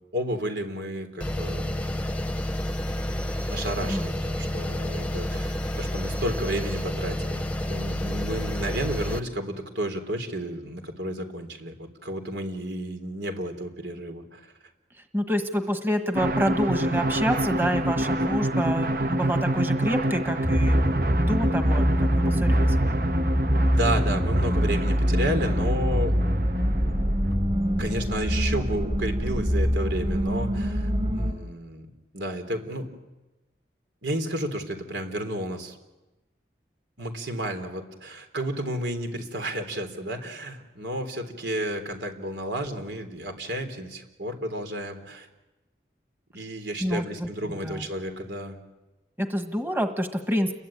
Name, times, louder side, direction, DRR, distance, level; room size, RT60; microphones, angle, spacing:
voice 1, 0.1-1.7 3.5-14.4 23.6-26.2 27.8-31.9 32.1-32.9 34.0-35.8 37.0-45.3 46.3-48.6, right 1 dB, 90° right, 6 dB, 3.8 m, -32 dB
sound 1, 1.2-9.2, left 1 dB, 10° left, 0.9 m, -30 dB
voice 2, 15.1-20.8 21.2-21.9 22.3-22.8 46.8-47.3 47.6-47.9 49.2-50.5, equal, 10° right, 6 dB, 1.4 m, -27 dB
sound 2, 16.1-27.3, right 1 dB, 50° right, 0.9 m, -28 dB
sound 3, 20.4-31.3, equal, 35° right, 4.0 m, -24 dB
30.0 x 22.5 x 8.9 m, 1.1 s
head